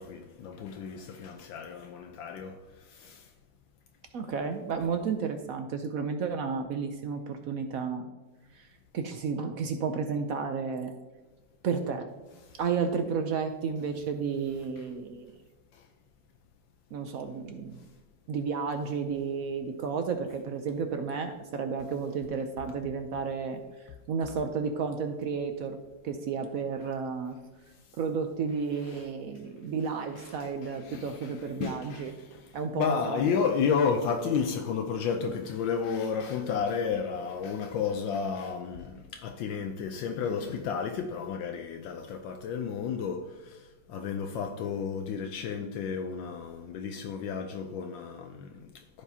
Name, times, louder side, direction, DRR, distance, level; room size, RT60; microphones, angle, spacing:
voice 1, 0.0-3.3 14.8-14.9 28.8-29.0 30.2-49.0, left 6 dB, 80° left, 1.3 m, -32 dB
voice 2, 4.1-8.1 8.5-8.7 8.9-10.9 11.6-12.1 12.6-15.3 16.9-17.8 18.3-23.6 24.1-25.8 26.0-27.4 28.0-32.1 32.5-33.2, right 5 dB, 70° right, 0.8 m, -32 dB
14.5 x 5.0 x 2.8 m
omnidirectional pair, 2.1 m